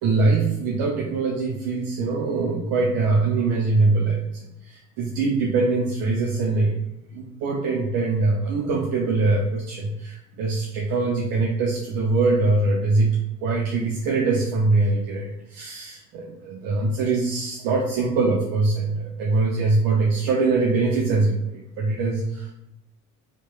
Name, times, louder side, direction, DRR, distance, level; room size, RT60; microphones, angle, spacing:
voice 1, 0.0-4.2 4.6-6.7 7.1-13.1 13.4-22.5, right 3 dB, 55° right, -1 dB, 0.5 m, -23 dB
2.9 x 2.2 x 2.2 m, 0.84 s
hypercardioid pair, 60°, 41 cm